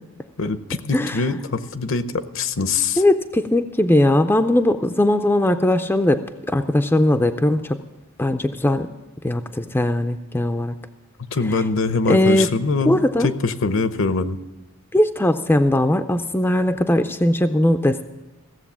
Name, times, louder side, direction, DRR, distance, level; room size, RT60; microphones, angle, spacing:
voice 1, 0.4-3.0 11.2-14.4, left 4 dB, 60° left, 12 dB, 0.7 m, -23 dB
voice 2, 0.9-1.3 3.0-7.8 8.2-8.9 9.2-10.7 12.1-12.5 12.9-13.3 14.9-18.0, left 1 dB, 10° left, 8 dB, 0.4 m, -19 dB
16.0 x 7.6 x 7.3 m, 1.1 s
head